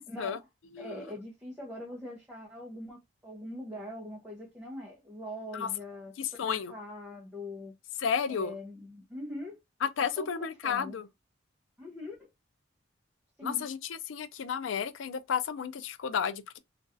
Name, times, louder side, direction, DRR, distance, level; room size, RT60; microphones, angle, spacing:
voice 1, 0.1-0.5 0.8-6.1 6.4-7.7 8.3-9.6 10.0-11.0 11.8-12.3 13.4-13.6, left 1 dB, 10° right, 0.7 m, -42 dB
voice 2, 0.8-1.1 5.5-5.7 6.2-6.7 8.0-8.6 9.8-11.1 13.4-16.6, left 7 dB, 85° left, 0.4 m, -32 dB
3.0 x 2.5 x 2.5 m
head